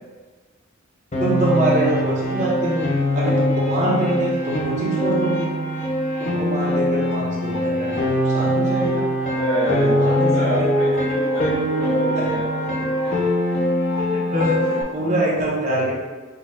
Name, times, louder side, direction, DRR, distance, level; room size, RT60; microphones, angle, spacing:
Piano, 1.1-14.8, equal, 35° left, 0.6 m, -22 dB
voice 1, 1.2-2.9 3.1-5.5 6.2-9.1 9.7-10.3 14.3-15.9, right 1 dB, 35° right, -6 dB, 1.1 m, -24 dB
voice 2, 9.3-13.1, equal, 60° right, -9 dB, 1.2 m, -27 dB
4.0 x 2.4 x 4.3 m, 1.4 s
head